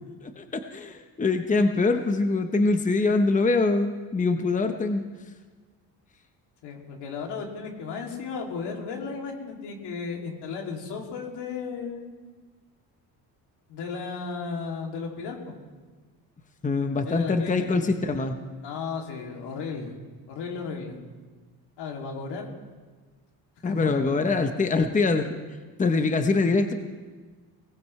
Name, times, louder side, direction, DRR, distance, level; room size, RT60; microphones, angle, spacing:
voice 1, 0.2-5.0 16.6-18.4 23.6-25.4 25.8-26.7, left 3 dB, 20° left, 7 dB, 0.9 m, -24 dB
voice 2, 6.6-12.1 13.7-15.5 17.0-17.8 18.6-20.0 20.3-21.0 21.8-22.5 23.6-24.0, left 5 dB, 80° left, 0 dB, 2.8 m, -34 dB
18.5 x 18.0 x 3.3 m, 1.4 s
cardioid pair, 95°, 40 cm